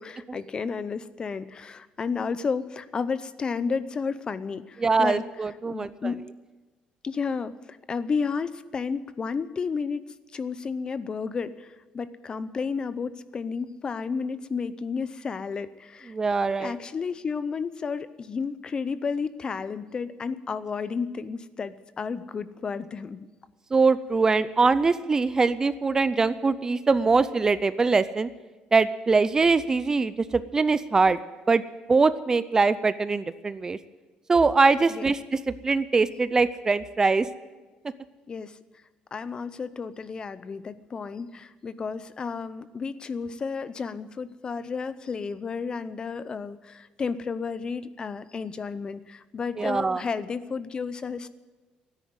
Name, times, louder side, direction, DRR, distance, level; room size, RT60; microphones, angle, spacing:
voice 1, 0.0-5.2 5.6-6.2 7.0-10.0 10.3-16.1 16.6-23.3 34.9-35.1 38.3-38.6 39.1-51.3, left 5 dB, 30° left, 15 dB, 0.7 m, -32 dB
voice 2, 4.8-6.1 16.1-16.7 23.7-28.3 28.7-31.2 31.5-31.6 31.9-33.8 34.3-37.3 49.6-50.0, right 4 dB, 20° right, 15 dB, 0.5 m, -22 dB
13.5 x 9.9 x 9.6 m, 1.2 s
cardioid pair, 125°, 3 cm